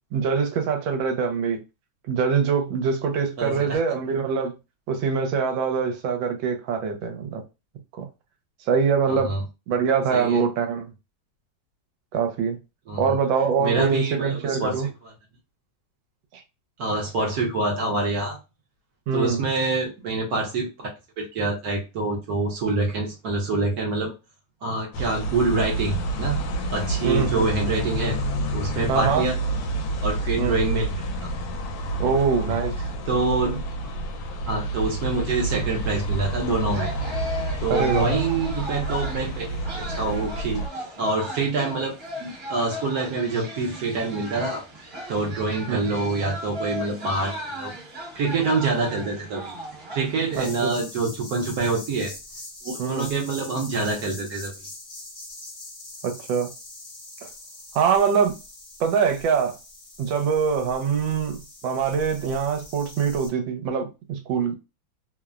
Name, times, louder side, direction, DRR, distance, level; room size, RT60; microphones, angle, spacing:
voice 1, 0.1-1.6 2.1-4.5 4.9-7.4 8.0-8.1 8.7-9.4 9.7-10.9 12.1-12.6 13.0-14.9 16.3-16.4 19.1-19.4 27.0-27.5 28.9-29.3 30.4-30.6 32.0-32.7 37.7-38.1 45.7-45.9 50.3-50.8 52.8-53.1 56.0-56.5 57.2-57.3 57.7-58.4 58.8-59.5 60.0-64.6, right 6 dB, 80° right, 1.3 m, -24 dB
voice 2, 3.4-3.8 9.1-9.4 10.1-10.4 12.9-13.1 13.6-14.8 16.8-18.4 19.1-20.9 21.2-24.1 24.6-26.4 26.7-28.2 28.5-29.3 30.0-31.3 32.5-32.6 33.1-34.0 34.5-36.9 37.6-41.9 42.2-44.6 45.1-47.7 48.2-49.6 49.9-52.1 52.6-54.5, right 3 dB, 65° right, 1.0 m, -26 dB
sound 1, 24.9-40.7, right 2 dB, 75° left, 1.2 m, -29 dB
sound 2, 36.7-50.6, equal, 45° right, 0.9 m, -36 dB
sound 3, 50.3-63.3, left 2 dB, 45° left, 0.4 m, -42 dB
3.2 x 2.0 x 2.3 m
omnidirectional pair, 2.1 m